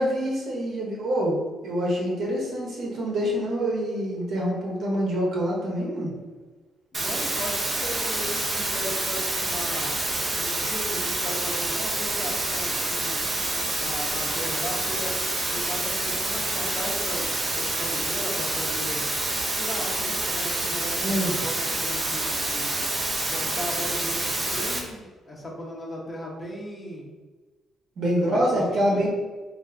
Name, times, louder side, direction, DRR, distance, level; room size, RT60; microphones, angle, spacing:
voice 1, 0.0-6.1 21.0-21.4 28.0-29.1, equal, 65° right, -3 dB, 1.2 m, -26 dB
voice 2, 6.9-9.9 10.4-13.3 13.7-15.2 15.4-19.0 19.5-22.8 23.3-27.1 28.2-29.1, equal, 30° left, -2 dB, 1.0 m, -37 dB
sound 1, 6.9-24.8, right 2 dB, 40° right, 0.8 m, -27 dB
3.2 x 2.9 x 3.5 m, 1.3 s
cardioid pair, 90°, 0 cm